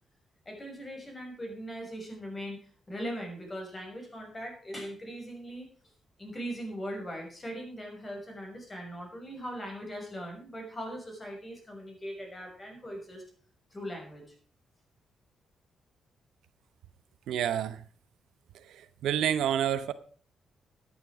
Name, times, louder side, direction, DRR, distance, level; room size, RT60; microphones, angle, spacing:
voice 1, 0.5-5.7 6.2-13.2 13.7-14.3, equal, 30° left, 6.1 m, -40 dB
voice 2, 17.3-17.8 19.0-19.9, right 10 dB, 85° right, 0.8 m, -28 dB
13.0 x 9.1 x 4.9 m
cardioid pair, 75°, 0 cm